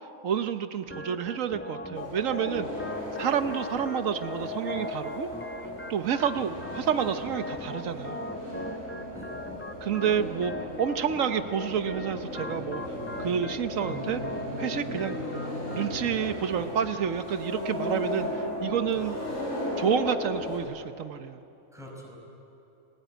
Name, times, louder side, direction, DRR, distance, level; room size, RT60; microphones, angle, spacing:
voice 1, 0.2-2.7 3.2-5.3 5.9-8.2 9.8-12.8 13.2-14.2 14.6-15.2 15.7-19.2 19.8-21.4, right 8 dB, 85° right, 9 dB, 1.3 m, -29 dB
Organ, 0.9-15.9, left 2 dB, 15° left, 0.4 m, -41 dB
sound 1, 1.9-20.6, left 1 dB, 75° left, 6.5 m, -35 dB
voice 2, 9.1-9.4 18.9-19.5 21.7-22.2, equal, ahead, -1 dB, 5.6 m, -48 dB
29.0 x 20.0 x 9.2 m, 2.8 s
omnidirectional pair, 1.3 m